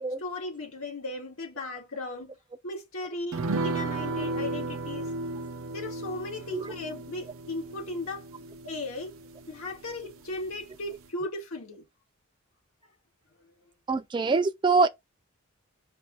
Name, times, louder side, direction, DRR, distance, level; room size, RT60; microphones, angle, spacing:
voice 1, 0.2-2.3 2.6-5.1 5.7-8.3 8.6-9.1 9.5-11.8, left 2 dB, 80° left, 1.8 m, -36 dB
sound 1, 3.3-10.1 10.4-10.5 10.8-11.0, right 2 dB, 75° right, 0.7 m, -34 dB
voice 2, 13.9-14.9, right 4 dB, 20° right, 0.3 m, -24 dB
5.1 x 2.3 x 4.5 m
head